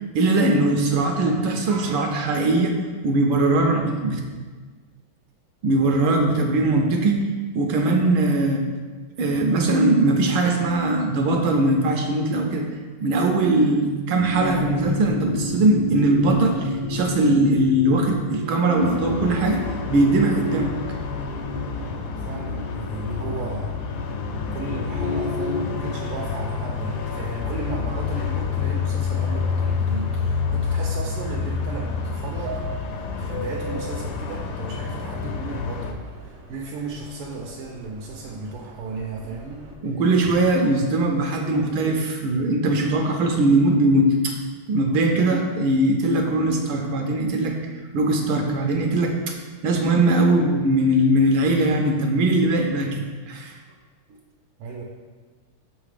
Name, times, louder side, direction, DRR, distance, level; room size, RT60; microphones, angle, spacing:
voice 1, 0.1-2.8 3.0-4.2 5.6-7.2 7.5-8.7 9.2-12.6 13.0-19.6 19.9-20.7 39.8-44.4 44.7-47.6 47.9-49.4 49.6-53.6, right 2 dB, 75° right, 2 dB, 1.3 m, -20 dB
sound 1, 14.2-25.9, left 2 dB, 65° left, 1.1 m, -30 dB
sound 2, 18.8-35.9, left 6 dB, 85° left, 1.5 m, -28 dB
voice 2, 22.2-23.8 24.5-39.7 44.9-45.0 54.6-54.8, right 3 dB, 90° right, -1 dB, 1.6 m, -35 dB
Subway metro underground, 25.9-39.7, right 2 dB, 50° right, 0.8 m, -42 dB
6.4 x 3.9 x 4.9 m, 1.4 s
omnidirectional pair, 2.4 m